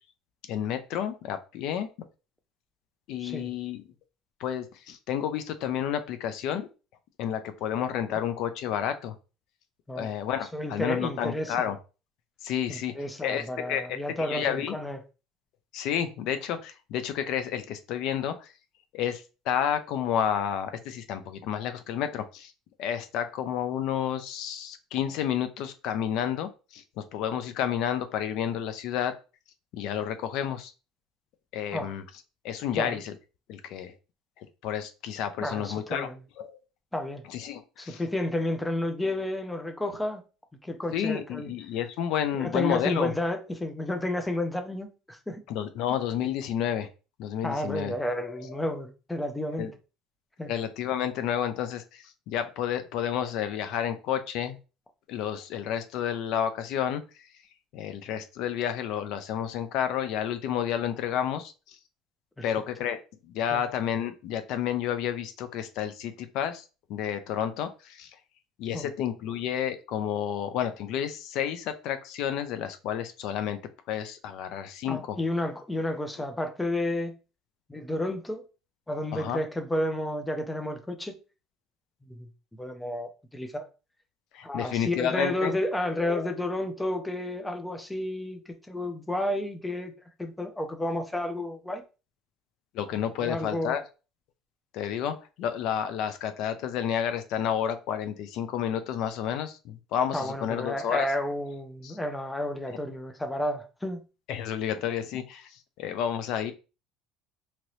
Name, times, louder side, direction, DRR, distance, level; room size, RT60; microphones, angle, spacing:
voice 1, 0.5-1.9 3.1-3.8 4.4-6.7 7.2-9.1 9.9-11.8 12.4-12.9 13.2-14.8 15.7-18.5 18.9-22.5 22.8-26.8 27.1-29.1 29.7-30.7 31.5-32.0 32.4-33.1 33.5-33.9 34.6-36.1 36.4-36.6 37.3-38.0 40.9-43.1 45.5-46.9 47.2-48.0 49.6-49.7 50.5-54.6 55.1-57.0 57.7-61.8 62.4-63.0 63.3-66.6 66.9-68.1 68.6-73.6 73.9-75.2 79.1-79.4 84.3-86.3 92.7-93.8 94.7-101.1 101.8-102.0 104.3-106.5, left 9 dB, 65° left, 0.4 m, -30 dB
voice 2, 3.2-3.5 9.9-10.1 10.5-11.5 12.7-15.0 31.7-31.9 32.7-33.0 35.4-36.2 36.9-37.2 37.8-40.2 40.6-41.5 42.3-45.4 47.4-49.7 50.4-50.5 62.4-62.5 63.5-63.6 68.7-68.9 74.9-77.2 77.7-78.5 78.9-81.2 82.1-82.3 82.6-83.7 84.4-89.9 90.2-91.8 93.2-93.8 100.1-104.0, left 1 dB, 10° left, 0.5 m, -31 dB
2.9 x 2.6 x 3.0 m
cardioid pair, 125°, 0 cm